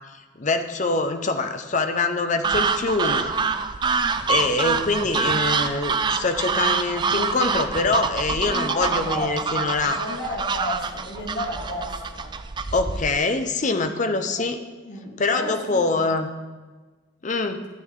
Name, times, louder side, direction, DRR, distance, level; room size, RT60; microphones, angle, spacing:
voice 1, 0.1-3.3 4.3-10.0 12.7-14.6 15.2-16.3 17.2-17.6, left 3 dB, 40° left, 8 dB, 0.7 m, -24 dB
sound 1, 2.4-13.2, right 5 dB, 25° right, 0.3 m, -26 dB
voice 2, 8.3-12.3 14.4-14.5 14.8-16.0, left 1 dB, 65° left, -3 dB, 2.1 m, -33 dB
12.5 x 8.3 x 3.8 m, 1.3 s
head